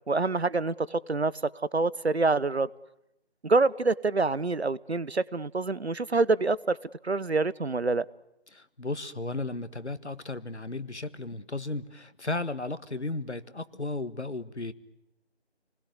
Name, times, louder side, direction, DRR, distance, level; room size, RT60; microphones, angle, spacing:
voice 1, 0.1-1.3 1.7-2.7 3.4-6.8 7.0-8.0, right 3 dB, 70° right, 23 dB, 1.1 m, -26 dB
voice 2, 8.5-14.7, left 2 dB, 90° left, 13 dB, 1.9 m, -34 dB
29.5 x 20.5 x 9.6 m, 0.87 s
figure-of-eight pair, 175°, 33 cm